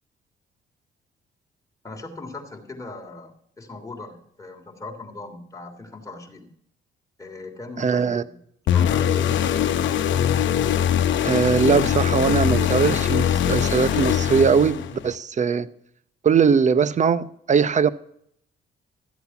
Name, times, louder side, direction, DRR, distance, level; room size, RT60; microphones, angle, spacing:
voice 1, 1.8-6.5 7.2-8.4 8.6-10.0, left 2 dB, 15° left, 3.0 m, -39 dB
voice 2, 7.8-8.2 11.2-15.7 16.2-17.9, right 6 dB, 35° right, 0.8 m, -20 dB
sound 1, 8.7-15.1, left 9 dB, 70° left, 1.0 m, -22 dB
13.5 x 8.1 x 5.8 m
cardioid pair, 90°, 20 cm